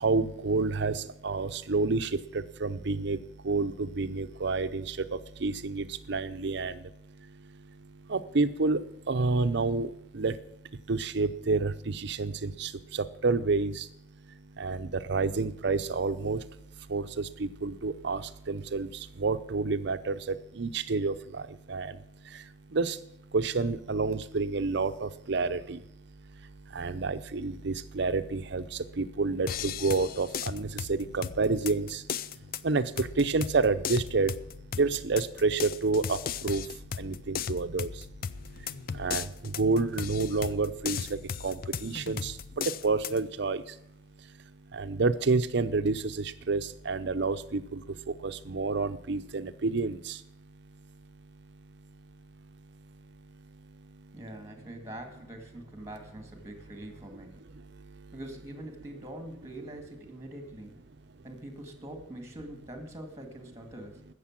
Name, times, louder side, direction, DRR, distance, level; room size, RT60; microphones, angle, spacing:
voice 1, 0.0-2.1 2.6-3.2 3.4-5.0 5.4-6.7 8.1-8.8 9.1-10.3 10.9-13.8 14.6-16.4 16.9-18.2 18.5-18.9 19.2-20.2 20.6-21.1 21.7-21.9 22.7-23.0 23.3-25.8 26.7-28.6 29.0-32.0 32.6-34.3 34.8-36.2 36.4-36.6 37.0-37.9 39.0-41.2 41.4-41.6 41.8-42.3 42.8-43.6 44.7-47.8 48.2-50.2, right 3 dB, 65° right, 11 dB, 0.7 m, -29 dB
sound 1, 29.5-43.2, left 7 dB, 50° left, 0.5 m, -37 dB
voice 2, 54.1-57.4 58.1-60.8 61.2-64.1, right 1 dB, 15° right, 5 dB, 2.2 m, -44 dB
16.0 x 6.8 x 7.4 m, 0.78 s
head